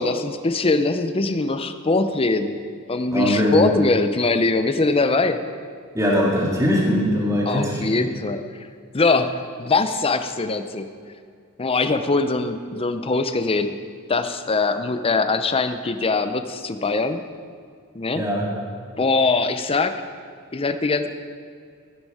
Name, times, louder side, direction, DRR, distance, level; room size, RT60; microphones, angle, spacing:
voice 1, 0.0-2.6 2.9-5.4 7.5-8.7 8.9-10.9 11.6-13.8 14.1-17.2 17.9-18.2 19.0-19.9 20.5-21.1, left 3 dB, 25° left, 10 dB, 0.6 m, -22 dB
voice 2, 3.1-3.7 5.9-8.0 18.1-18.5, equal, 15° right, -4 dB, 2.2 m, -21 dB
15.5 x 9.7 x 4.9 m, 2.2 s
head